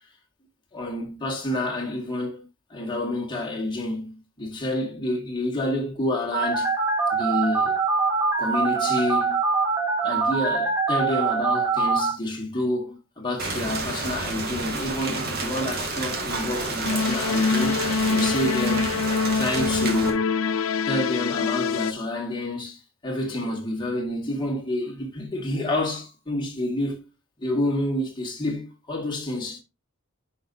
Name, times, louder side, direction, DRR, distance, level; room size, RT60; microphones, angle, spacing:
voice 1, 0.7-6.7 7.1-7.8 8.4-9.4 10.0-19.0 19.3-20.3 20.9-27.0 27.4-29.6, left 1 dB, 20° left, 1.9 m, -28 dB
Telephone, 6.3-12.1, right 4 dB, 10° right, 3.6 m, -23 dB
Rain, 13.4-20.1, right 3 dB, 50° right, 1.9 m, -30 dB
sound 1, 16.8-21.9, left 5 dB, 75° left, 0.5 m, -25 dB
10.5 x 5.4 x 2.7 m
head